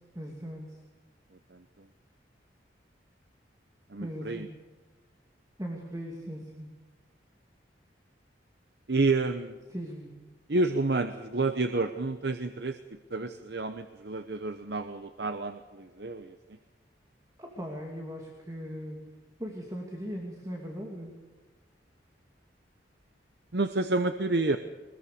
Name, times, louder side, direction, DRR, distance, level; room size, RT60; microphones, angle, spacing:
voice 1, 0.1-0.8 4.0-4.5 5.6-6.7 9.7-10.1 17.4-19.0 19.4-21.1, equal, 20° right, 1 dB, 2.6 m, -39 dB
voice 2, 3.9-4.5 8.9-9.6 10.5-16.6 23.5-24.6, right 3 dB, 65° right, 9 dB, 1.0 m, -29 dB
21.5 x 21.0 x 6.8 m, 1.3 s
head